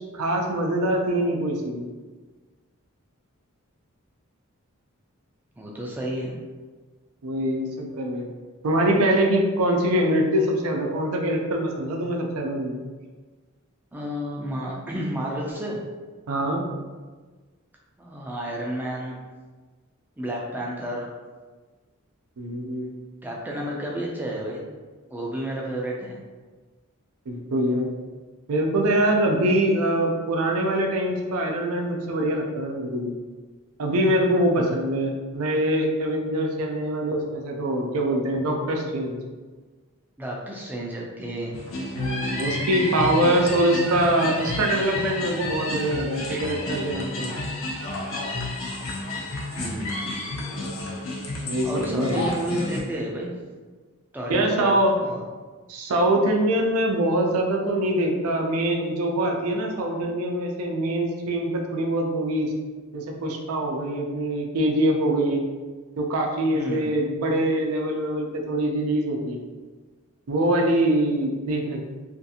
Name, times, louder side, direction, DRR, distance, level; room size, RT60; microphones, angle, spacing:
voice 1, 0.0-1.9 7.2-8.3 8.6-12.8 16.3-16.7 22.4-22.9 27.3-27.9 28.5-33.1 33.8-39.2 41.9-47.3 51.5-52.3 54.3-54.9 55.7-62.5 62.9-65.4 66.0-69.4 70.3-71.8, right 1 dB, 85° right, 1 dB, 0.4 m, -24 dB
voice 2, 5.6-6.3 13.9-15.8 18.0-19.1 20.2-21.1 23.2-24.7 25.1-26.2 40.2-41.6 46.3-46.4 49.5-50.2 51.6-53.3 54.1-54.8 55.0-55.2 66.5-66.9, right 1 dB, 10° right, -3 dB, 0.3 m, -31 dB
sound 1, 41.5-52.8, left 2 dB, 65° left, 0.5 m, -31 dB
2.5 x 2.4 x 2.7 m, 1.4 s
head